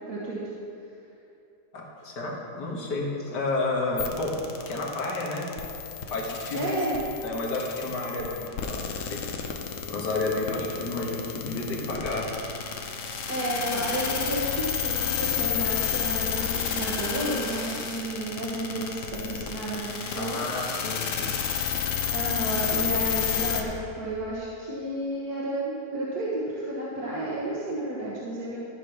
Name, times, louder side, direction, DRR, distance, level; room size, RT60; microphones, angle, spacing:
voice 1, 0.1-0.4 6.5-7.0 13.3-20.6 22.1-28.6, right 1 dB, 65° right, -6 dB, 1.7 m, -31 dB
voice 2, 1.7-4.4 4.7-5.5 6.1-6.7 7.2-9.2 9.9-12.3 20.1-21.4, left 2 dB, 75° left, -2 dB, 2.1 m, -31 dB
sound 1, 4.0-23.6, left 8 dB, 60° left, 1.0 m, -31 dB
13.5 x 4.9 x 5.9 m, 2.7 s
omnidirectional pair, 1.8 m